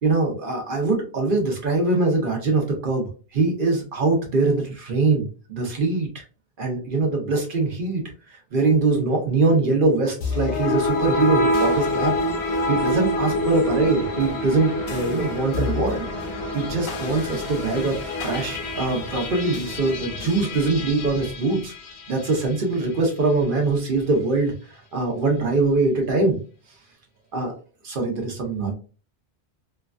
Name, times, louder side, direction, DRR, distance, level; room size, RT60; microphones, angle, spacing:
voice 1, 0.0-6.2 6.6-8.0 8.5-12.1 12.7-18.0 18.2-21.7 22.1-26.4 27.3-27.5 27.8-28.7, right 3 dB, 55° right, 2 dB, 0.9 m, -23 dB
sound 1, 10.2-22.5, left 1 dB, 85° left, 1.0 m, -26 dB
3.1 x 2.3 x 2.4 m, 0.36 s
omnidirectional pair, 1.1 m